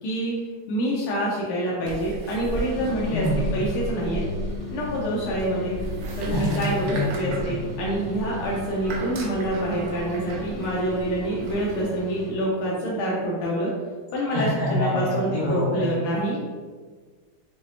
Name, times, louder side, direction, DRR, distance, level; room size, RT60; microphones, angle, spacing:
voice 1, 0.0-0.4 0.7-3.3 3.5-4.2 4.7-5.8 6.2-13.7 14.1-16.4, right 1 dB, 80° left, -5 dB, 1.5 m, -26 dB
sound 1, 1.8-11.8, right 2 dB, 85° right, 0.9 m, -35 dB
sound 2, 2.4-12.4, left 3 dB, 45° right, 1.0 m, -37 dB
voice 2, 3.1-3.5 6.3-7.1 7.4-7.6 14.3-15.9, left 1 dB, 40° left, -11 dB, 0.8 m, -26 dB
sound 3, 7.9-13.3, equal, 70° right, 1.5 m, -43 dB
5.6 x 2.0 x 2.7 m, 1.5 s
omnidirectional pair, 2.4 m